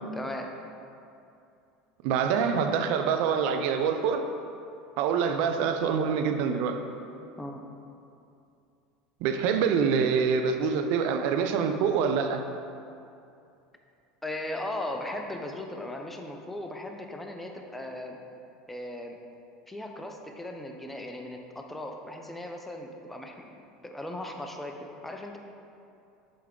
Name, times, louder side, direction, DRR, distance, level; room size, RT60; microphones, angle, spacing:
voice 1, 0.1-0.5 7.4-7.6 9.6-9.8 14.2-18.2 18.7-19.2 19.7-23.6 23.8-25.4, left 1 dB, 10° left, 3 dB, 0.6 m, -37 dB
voice 2, 2.0-4.3 5.0-6.8 9.2-12.4, right 6 dB, 65° right, 6 dB, 0.4 m, -25 dB
7.5 x 3.5 x 3.7 m, 2.6 s
hypercardioid pair, 90°, 2 cm